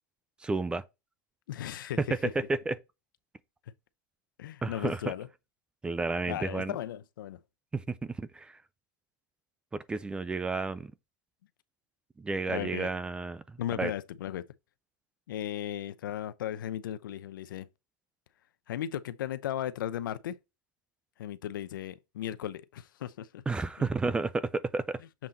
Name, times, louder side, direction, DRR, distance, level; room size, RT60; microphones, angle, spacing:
voice 1, 0.4-0.8 2.0-2.1 2.4-2.8 4.6-5.0 5.8-6.7 7.7-8.6 9.7-10.9 12.2-13.9 23.5-25.0, right 3 dB, 10° right, 0.4 m, -31 dB
voice 2, 1.5-2.2 4.4-5.3 6.3-7.4 12.5-12.9 13.6-14.5 15.3-17.7 18.7-20.4 21.2-23.4, left 11 dB, 90° left, 0.7 m, -36 dB
7.4 x 3.8 x 4.2 m
supercardioid pair, 145°, 11 cm